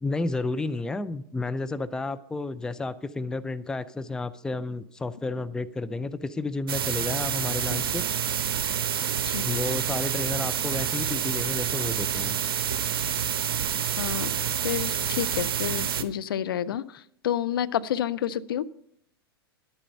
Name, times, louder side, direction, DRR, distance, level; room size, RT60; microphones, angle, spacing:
voice 1, 0.0-8.0 9.4-12.3, left 3 dB, 5° left, 14 dB, 0.4 m, -31 dB
sound 1, 6.7-16.0, right 9 dB, 65° right, 0.8 m, -28 dB
voice 2, 14.0-14.3 14.6-18.6, left 10 dB, 65° left, 15 dB, 0.6 m, -29 dB
11.0 x 8.9 x 5.6 m, 0.71 s
figure-of-eight pair, 95°, 13 cm